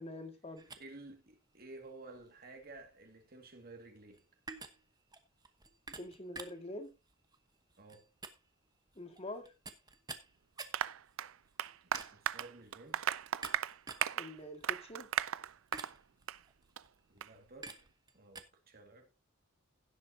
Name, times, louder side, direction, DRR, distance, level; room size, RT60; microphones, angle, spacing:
voice 1, 0.0-0.6 6.0-6.9 9.0-9.5 14.2-15.1, left 1 dB, 30° left, 1.9 m, -45 dB
sound 1, 0.6-18.4, right 3 dB, 20° right, 1.1 m, -52 dB
voice 2, 0.8-4.3 7.8-8.1 11.9-13.1 17.1-17.8 18.1-19.1, right 2 dB, 45° right, 2.1 m, -53 dB
Applause, 10.7-16.0 16.3-16.4 16.8-16.9 17.2-17.3, right 10 dB, 65° right, 0.5 m, -37 dB
17.0 x 7.7 x 2.8 m
head